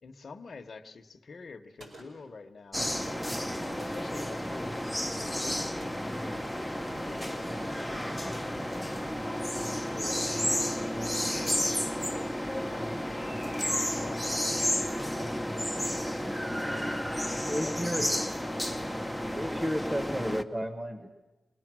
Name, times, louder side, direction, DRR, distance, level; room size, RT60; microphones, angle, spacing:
voice 1, 0.0-3.0 3.5-9.0 9.5-16.4 17.2-18.7, left 4 dB, 50° left, 5 dB, 1.0 m, -49 dB
Gunshot gunfire, 1.8-2.4 3.8-4.3 5.8-6.4, right 1 dB, 70° right, 4.6 m, -51 dB
sound 1, 2.7-20.4, equal, ahead, 0.7 m, -32 dB
voice 2, 17.5-18.1 19.3-21.1, equal, 15° right, 7 dB, 1.3 m, -32 dB
26.0 x 20.5 x 6.2 m, 1.1 s
wide cardioid pair, 160°, 0 cm